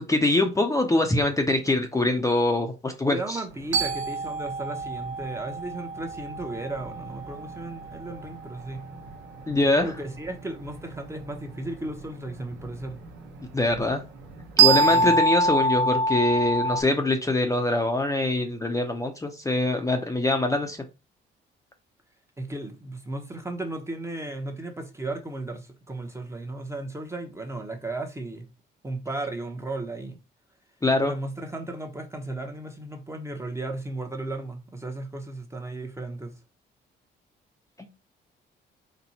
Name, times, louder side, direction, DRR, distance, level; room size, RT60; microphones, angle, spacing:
voice 1, 0.1-3.2 9.5-9.9 13.5-14.0 14.6-20.8 30.8-31.1, left 2 dB, 15° left, 0.6 m, -23 dB
voice 2, 3.1-8.8 9.8-13.0 14.8-15.2 22.4-28.5 28.8-30.2 31.0-36.3, right 2 dB, 15° right, 0.8 m, -35 dB
sound 1, 3.5-16.8, right 3 dB, 75° right, 1.1 m, -27 dB
4.2 x 2.2 x 4.1 m
cardioid pair, 90°, 20 cm